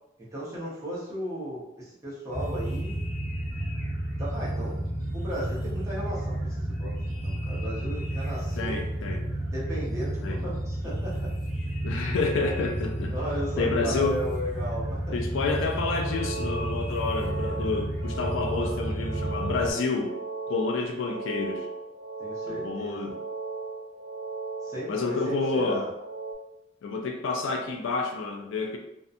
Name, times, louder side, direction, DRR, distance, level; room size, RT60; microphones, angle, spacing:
voice 1, 0.3-3.0 4.2-4.7 5.1-6.9 7.2-8.8 9.5-11.3 13.1-15.2 18.5-18.9 22.2-23.1 24.6-25.9, equal, 15° right, -7 dB, 0.8 m, -35 dB
sound 1, 2.3-19.7, right 1 dB, 10° left, 1.0 m, -31 dB
voice 2, 8.6-9.2 10.2-10.4 11.8-13.1 13.6-14.2 15.1-20.1 20.5-21.7 22.5-23.1 24.9-25.9 26.8-28.8, left 3 dB, 70° left, 3 dB, 0.3 m, -29 dB
sound 2, 15.9-26.3, right 3 dB, 55° right, 0.5 m, -37 dB
2.7 x 2.2 x 2.4 m, 0.88 s
head